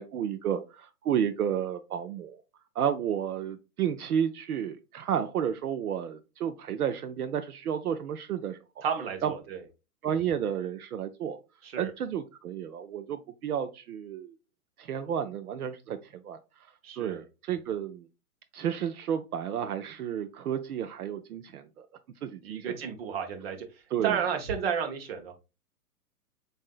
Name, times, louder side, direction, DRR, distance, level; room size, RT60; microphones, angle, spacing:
voice 1, 0.0-2.4 2.7-8.8 9.2-9.3 10.0-11.4 11.8-14.3 14.8-18.1 18.5-21.9 22.2-22.8 23.9-24.2, right 9 dB, 75° right, 8 dB, 0.6 m, -32 dB
voice 2, 8.8-9.6 11.6-11.9 16.8-17.2 22.4-23.6 24.0-25.3, right 7 dB, 40° right, 4 dB, 1.0 m, -32 dB
7.2 x 2.7 x 2.3 m, 0.29 s
hypercardioid pair, 160°, 46 cm